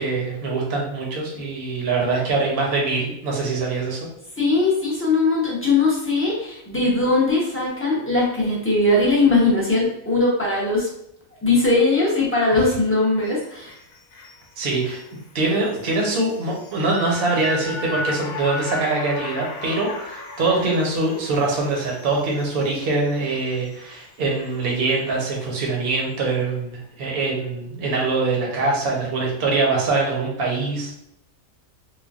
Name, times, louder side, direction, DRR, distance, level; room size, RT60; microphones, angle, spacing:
voice 1, 0.0-4.1 14.6-15.0 15.3-30.9, right 3 dB, 50° right, -2 dB, 0.8 m, -23 dB
voice 2, 4.4-10.9 11.4-13.7, left 3 dB, 15° left, -5 dB, 0.5 m, -20 dB
sound 1, 13.2-25.5 25.9-26.0, left 3 dB, 65° left, 0.8 m, -37 dB
3.2 x 2.2 x 2.4 m, 0.74 s
omnidirectional pair, 1.5 m